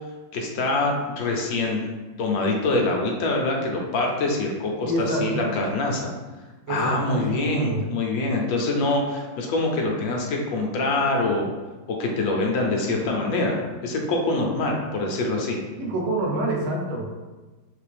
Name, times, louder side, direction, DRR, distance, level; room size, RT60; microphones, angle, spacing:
voice 1, 0.3-1.8 2.2-6.1 6.7-11.5 12.0-15.6, left 2 dB, 70° left, 0 dB, 1.4 m, -25 dB
voice 2, 4.8-5.5 6.7-7.8 15.8-17.1, right 1 dB, 90° right, -2 dB, 1.7 m, -27 dB
4.3 x 3.4 x 3.3 m, 1.2 s
omnidirectional pair, 2.2 m